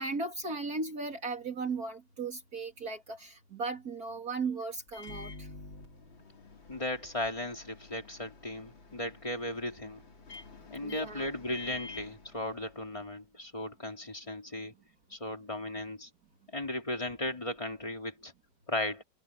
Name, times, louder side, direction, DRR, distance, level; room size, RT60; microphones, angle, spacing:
voice 1, 0.0-5.5 10.8-11.3, right 3 dB, 50° right, 3.0 m, -36 dB
Microwave oven, 4.9-13.0, left 3 dB, 80° left, 4.7 m, -49 dB
voice 2, 6.7-10.0 10.7-14.7 15.1-16.1 16.5-18.3 18.7-19.0, left 1 dB, 15° left, 3.4 m, -36 dB
omnidirectional pair, 2.1 m